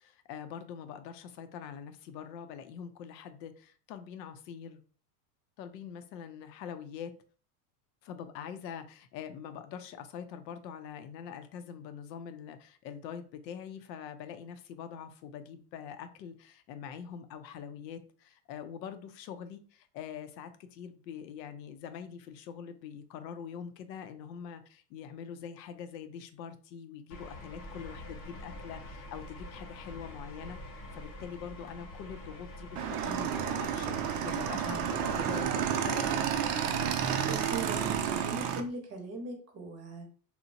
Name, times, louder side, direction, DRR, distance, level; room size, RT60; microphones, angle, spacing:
voice 1, 0.0-4.8 5.6-7.1 8.0-36.6, left 8 dB, 90° left, 9 dB, 0.6 m, -44 dB
sound 1, 27.1-38.7, left 1 dB, 30° left, 0.6 m, -46 dB
Motorcycle / Engine, 32.8-38.6, right 8 dB, 70° right, 0.5 m, -31 dB
voice 2, 37.3-40.1, right 2 dB, 30° right, 3 dB, 0.7 m, -40 dB
2.8 x 2.1 x 2.5 m, 0.40 s
supercardioid pair, 125°, 49 cm